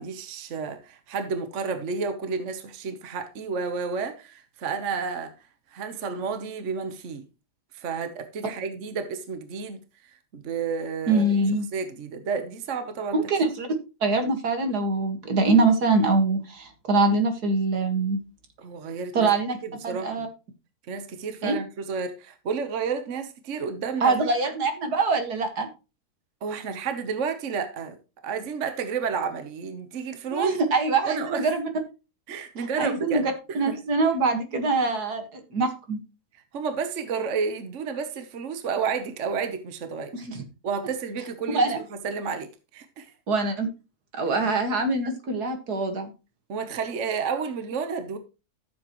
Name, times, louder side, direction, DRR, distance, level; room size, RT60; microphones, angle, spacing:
voice 1, 0.0-5.3 5.7-7.3 7.7-9.8 10.0-11.3 11.7-13.2 18.6-19.3 19.6-20.3 20.9-24.1 26.4-28.0 28.2-30.5 31.0-31.5 32.3-33.8 36.5-40.1 40.6-41.7 42.0-43.1 46.5-48.2, right 5 dB, 50° right, 1.3 m, -31 dB
voice 2, 11.1-11.7 13.1-13.7 14.0-18.2 19.1-19.6 19.8-20.3 21.4-21.6 24.0-25.7 30.3-31.7 32.6-33.2 33.5-36.0 40.1-40.4 41.5-41.8 43.3-43.7 44.1-46.1, right 3 dB, 75° right, 2.3 m, -24 dB
13.5 x 7.3 x 3.1 m
omnidirectional pair, 1.7 m